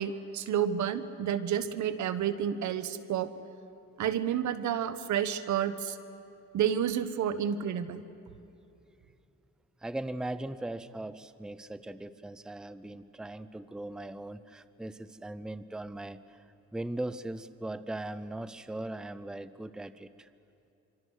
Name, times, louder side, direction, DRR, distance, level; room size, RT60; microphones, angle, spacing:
voice 1, 0.0-3.3 4.0-6.0 6.5-8.0, right 9 dB, 70° right, 13 dB, 1.2 m, -30 dB
voice 2, 9.8-16.4 16.7-20.3, right 1 dB, ahead, 14 dB, 0.6 m, -39 dB
25.5 x 25.0 x 6.4 m, 2.7 s
cardioid pair, 90°, 30 cm